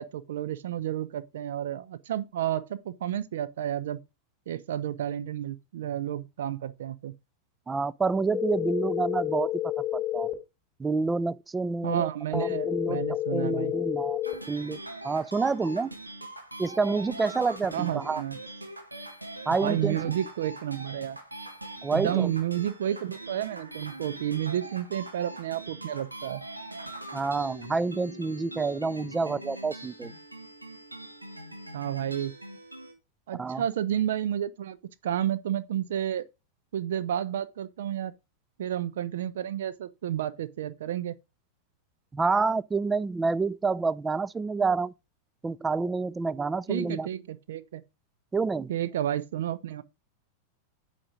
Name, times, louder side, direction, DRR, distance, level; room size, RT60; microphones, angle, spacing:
voice 1, 0.0-4.0 4.5-7.1 11.8-13.7 17.7-18.4 19.6-21.2 21.9-26.4 31.7-32.3 33.3-34.8 35.0-36.3 36.7-38.1 38.6-41.2 46.7-47.8 48.7-49.8, right 11 dB, 60° right, 0.6 m, -31 dB
voice 2, 7.7-9.5 9.9-10.3 10.8-13.0 13.3-14.2 14.5-15.9 16.6-18.2 19.5-20.1 21.8-22.3 27.1-30.1 33.4-33.6 42.1-44.9 45.4-47.1 48.3-48.7, right 4 dB, 15° right, 0.3 m, -28 dB
sound 1, 8.3-10.3 12.3-14.3, left 13 dB, 10° left, 2.2 m, -30 dB
sound 2, 14.2-32.9, right 1 dB, 85° right, 1.6 m, -42 dB
8.6 x 5.2 x 3.6 m
figure-of-eight pair, 90°, 0 cm